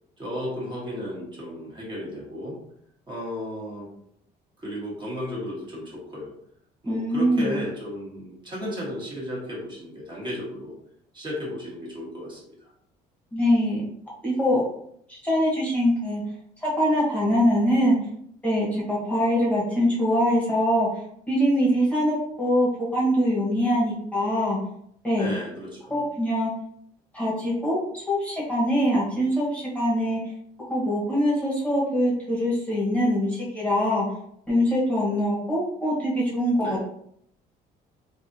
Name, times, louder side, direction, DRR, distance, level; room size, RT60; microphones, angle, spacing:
voice 1, 0.2-2.6 3.1-3.9 4.6-6.3 6.8-10.7 11.1-12.4 25.2-26.0 36.6-36.8, left 1 dB, 25° right, -5 dB, 1.3 m, -34 dB
voice 2, 6.9-7.6 13.3-13.8 14.2-14.6 15.1-16.2 16.6-18.0 18.4-20.9 21.3-24.6 25.0-25.3 25.9-26.5 27.1-30.3 30.7-34.0 34.5-36.9, equal, 10° left, -5 dB, 1.1 m, -23 dB
3.3 x 2.4 x 2.6 m, 0.69 s
cardioid pair, 110°, 17 cm